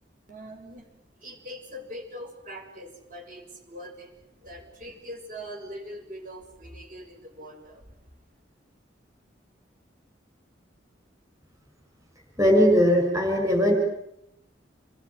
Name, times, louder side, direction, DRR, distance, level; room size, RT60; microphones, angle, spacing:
voice 1, 0.3-0.8 1.2-7.8, equal, 45° right, 3 dB, 6.8 m, -42 dB
voice 2, 12.4-13.7, equal, 15° right, 3 dB, 5.9 m, -19 dB
27.5 x 21.0 x 9.6 m, 0.80 s
head